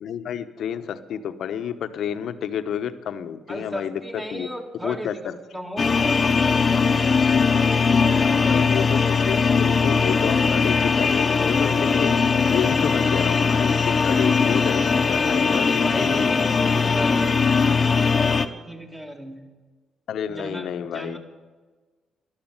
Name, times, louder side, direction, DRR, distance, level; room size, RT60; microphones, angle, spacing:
voice 1, 0.0-4.5 4.8-5.4 7.3-7.8 8.4-16.3 20.1-21.2, left 8 dB, 70° left, 10 dB, 1.0 m, -30 dB
voice 2, 3.5-7.3 7.7-8.8 15.4-19.4 20.3-21.2, equal, 15° right, 1 dB, 2.2 m, -36 dB
sound 1, 5.8-18.5, left 5 dB, 35° left, 1.0 m, -20 dB
13.5 x 11.5 x 9.0 m, 1.3 s
cardioid pair, 90°, 0 cm